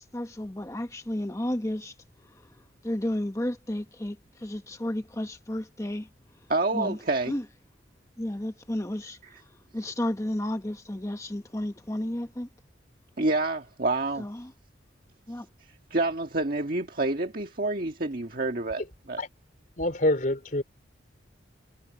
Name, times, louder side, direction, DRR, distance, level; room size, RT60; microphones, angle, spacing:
voice 1, 0.0-1.9 2.2-6.1 6.7-7.5 8.2-9.5 9.7-12.5 14.1-14.5 15.3-15.5, left 1 dB, 15° left, 1.0 m, -33 dB
voice 2, 6.5-7.3 13.2-14.2 15.9-19.2, right 2 dB, 50° right, 1.6 m, -28 dB
voice 3, 19.8-20.6, left 1 dB, 45° left, 3.4 m, -26 dB
head